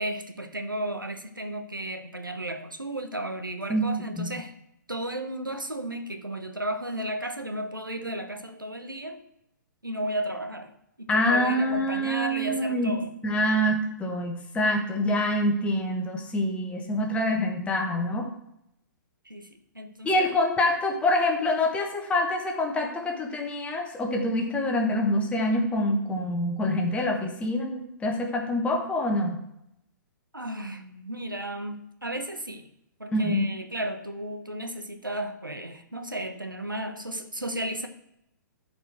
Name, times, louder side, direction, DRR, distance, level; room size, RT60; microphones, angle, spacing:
voice 1, 0.0-4.5 4.9-9.2 9.8-10.7 11.0-13.1 19.2-19.5 19.7-20.3 30.3-32.7 33.0-37.9, right 1 dB, 85° right, 7 dB, 1.0 m, -34 dB
voice 2, 11.1-13.0 13.2-18.3 20.0-29.4 33.1-33.5, left 1 dB, 10° left, 1 dB, 1.3 m, -26 dB
12.5 x 4.6 x 4.4 m, 0.79 s
figure-of-eight pair, 115°, 11 cm